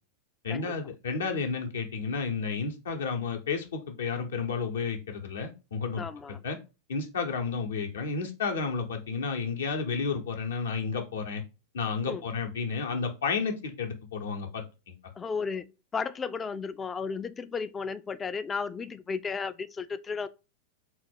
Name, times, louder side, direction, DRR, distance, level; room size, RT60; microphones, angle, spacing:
voice 1, 0.4-6.0 6.4-6.6 6.9-11.4 11.7-14.9, left 5 dB, 65° left, 0.7 m, -31 dB
voice 2, 6.0-6.4 12.1-12.2 15.2-15.7 15.9-20.3, left 5 dB, 20° left, 0.3 m, -34 dB
3.9 x 2.3 x 4.3 m
figure-of-eight pair, 90°, 0 cm